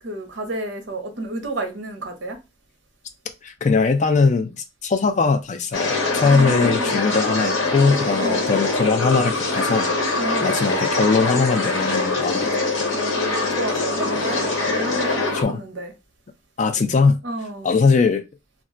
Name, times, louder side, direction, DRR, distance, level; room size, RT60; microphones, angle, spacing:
voice 1, 0.0-2.4 6.2-6.9 8.2-8.4 10.2-10.7 12.9-15.9 17.2-17.7, right 1 dB, 65° right, 0.8 m, -30 dB
voice 2, 3.4-9.9 10.4-12.6 15.3-15.6 16.6-17.2 17.6-18.2, left 4 dB, 35° left, 0.3 m, -20 dB
sound 1, 5.7-15.4, left 3 dB, 80° left, 0.8 m, -23 dB
2.3 x 2.2 x 3.6 m
head